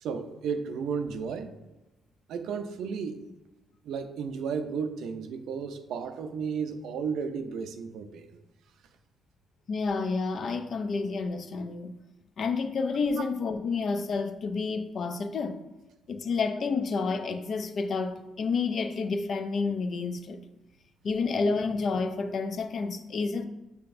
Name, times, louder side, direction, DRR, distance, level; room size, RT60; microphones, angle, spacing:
voice 1, 0.0-1.5 2.3-3.3 3.8-8.4, right 6 dB, 80° right, 0.4 m, -33 dB
voice 2, 9.7-12.0 12.4-15.6 16.1-20.4 21.0-23.5, left 4 dB, 55° left, 0.4 m, -29 dB
5.8 x 3.3 x 2.5 m
cardioid pair, 90°, 0 cm